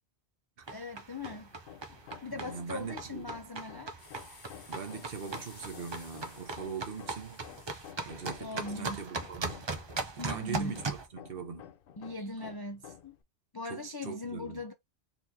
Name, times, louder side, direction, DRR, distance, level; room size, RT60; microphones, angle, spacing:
sound 1, 0.6-11.1, right 3 dB, 35° right, 0.5 m, -40 dB
voice 1, 0.7-1.5 2.2-3.9 8.4-9.0 10.2-10.8 12.0-13.2 13.5-14.7, left 2 dB, 35° left, 0.4 m, -39 dB
Hammer, 1.1-13.2, left 9 dB, 60° left, 0.7 m, -52 dB
voice 2, 2.3-3.3 4.7-7.4 8.1-9.7 10.2-11.7 13.6-14.6, right 6 dB, 60° right, 1.0 m, -41 dB
sound 2, 4.0-7.9, left 4 dB, 85° left, 1.6 m, -55 dB
4.0 x 3.0 x 2.6 m
omnidirectional pair, 1.1 m